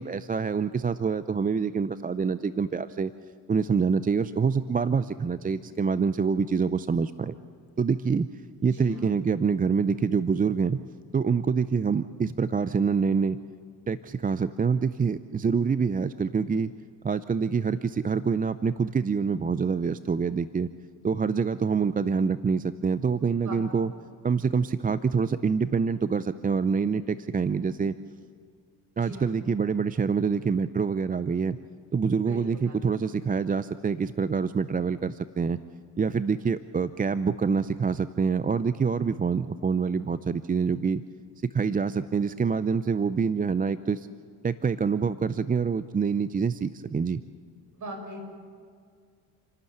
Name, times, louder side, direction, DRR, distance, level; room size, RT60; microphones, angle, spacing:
voice 1, 0.0-3.1 3.5-7.3 7.8-8.3 8.6-10.8 11.1-13.4 13.9-16.7 17.0-20.7 21.0-23.9 24.2-27.9 29.0-31.6 31.9-35.6 36.0-41.0 41.4-44.1 44.4-47.2, right 5 dB, 20° right, 14 dB, 0.6 m, -26 dB
voice 2, 8.7-9.1 23.4-23.8 29.0-29.4 32.2-32.9 47.7-48.2, equal, 50° right, 3 dB, 6.9 m, -40 dB
29.0 x 12.0 x 8.1 m, 2.1 s
supercardioid pair, 70°, 38 cm